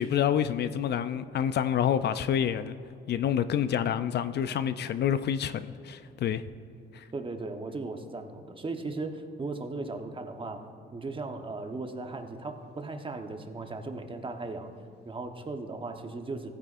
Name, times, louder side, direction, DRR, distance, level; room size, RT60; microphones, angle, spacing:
voice 1, 0.0-2.7 3.1-6.4 6.9-7.0, left 9 dB, 60° left, 12 dB, 0.4 m, -28 dB
voice 2, 7.1-14.7 15.0-16.5, right 3 dB, 25° right, 5 dB, 1.0 m, -37 dB
16.0 x 9.4 x 2.5 m, 2.7 s
cardioid pair, 90°, 20 cm